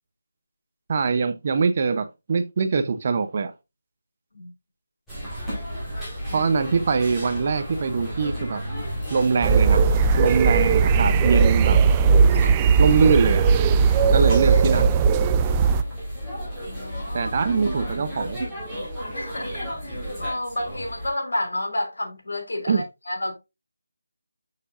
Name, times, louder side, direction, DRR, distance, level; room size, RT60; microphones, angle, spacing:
voice 1, 0.9-3.5 6.3-8.6 9.1-9.8 10.2-11.8 12.8-13.4 14.1-15.0 17.1-18.4 22.7-22.8, right 5 dB, 35° right, 0.7 m, -23 dB
sound 1, 5.1-21.1, equal, 5° left, 3.9 m, -33 dB
sound 2, 9.4-15.8, right 5 dB, 15° right, 0.4 m, -18 dB
voice 2, 13.9-14.3 16.7-17.3 19.1-23.3, left 1 dB, 70° left, 3.3 m, -31 dB
6.7 x 6.7 x 2.5 m
figure-of-eight pair, 165°, 0 cm